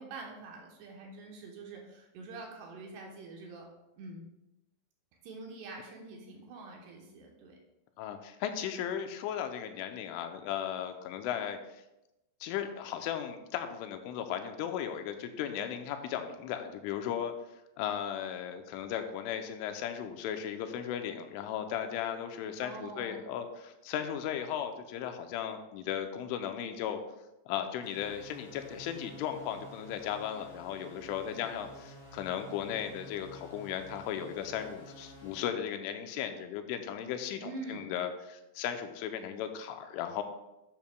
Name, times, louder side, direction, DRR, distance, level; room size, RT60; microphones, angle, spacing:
voice 1, 0.0-3.7 4.0-4.2 5.2-7.6 22.6-23.3 37.4-37.9, right 3 dB, 75° right, 0 dB, 2.7 m, -45 dB
voice 2, 8.0-11.8 12.4-17.3 17.8-27.0 27.5-40.2, left 9 dB, 85° left, 6 dB, 3.1 m, -36 dB
sound 1, 27.8-35.5, equal, 55° left, 1.2 m, -51 dB
10.5 x 8.9 x 2.2 m, 0.94 s
omnidirectional pair, 5.5 m